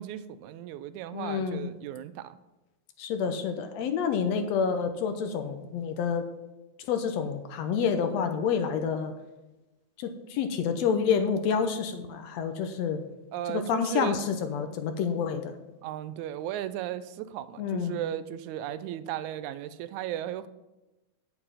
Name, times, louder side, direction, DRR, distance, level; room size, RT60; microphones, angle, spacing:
voice 1, 0.0-2.4 13.3-14.2 15.8-20.5, right 12 dB, 85° right, 14 dB, 1.9 m, -35 dB
voice 2, 1.1-1.6 3.0-6.3 6.9-9.1 10.0-13.0 13.5-15.5 17.6-18.0, left 6 dB, 70° left, 7 dB, 1.8 m, -28 dB
8.8 x 7.1 x 5.7 m, 1.0 s
omnidirectional pair, 3.3 m